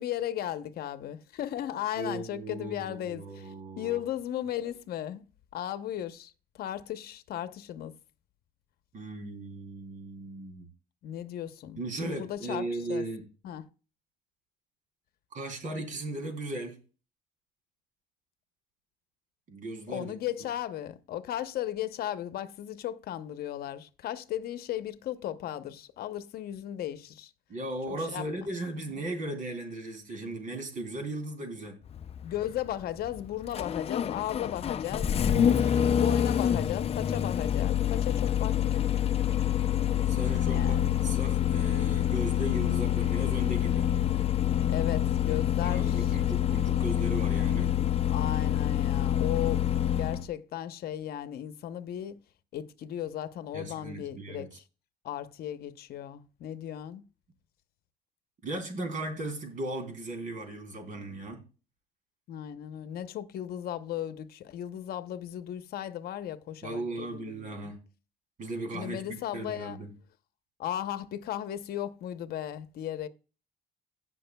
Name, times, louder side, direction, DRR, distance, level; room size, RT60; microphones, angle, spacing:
voice 1, 0.0-5.2 5.5-6.3 6.6-7.9 11.0-13.0 13.4-13.7 19.9-27.3 27.9-28.3 32.2-35.1 36.0-38.9 40.5-41.0 44.7-46.2 48.1-49.7 50.0-52.2 52.5-54.6 55.0-57.0 62.3-67.7 68.7-69.8 70.6-73.1, left 11 dB, 65° left, 0.8 m, -36 dB
voice 2, 2.0-4.0 8.9-10.7 11.8-13.2 15.3-16.8 19.5-20.1 27.5-31.8 35.3-36.0 40.1-43.9 45.6-47.7 53.5-54.5 58.4-61.4 66.6-67.8 68.4-69.9, right 2 dB, 50° right, 3.2 m, -37 dB
Engine starting, 31.9-50.3, left 10 dB, 35° left, 0.5 m, -27 dB
17.0 x 6.0 x 2.3 m
cardioid pair, 110°, 17 cm